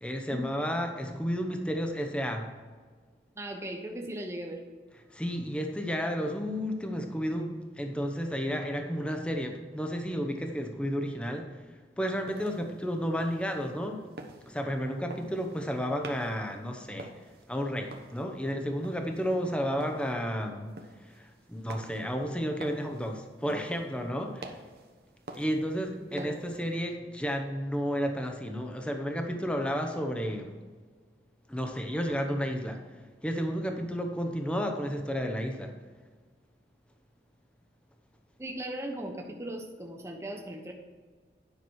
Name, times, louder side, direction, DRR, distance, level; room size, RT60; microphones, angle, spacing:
voice 1, 0.0-2.5 5.1-11.5 12.0-14.0 14.5-17.1 17.5-20.7 21.0-24.6 25.3-30.5 31.5-32.8 33.2-35.7, equal, 5° left, 4 dB, 0.8 m, -32 dB
voice 2, 3.3-4.6 26.0-26.3 38.4-40.7, right 1 dB, 15° right, 2 dB, 1.0 m, -38 dB
sound 1, 12.0-26.9, right 2 dB, 60° right, 0.9 m, -49 dB
10.0 x 6.0 x 4.7 m, 1.5 s
head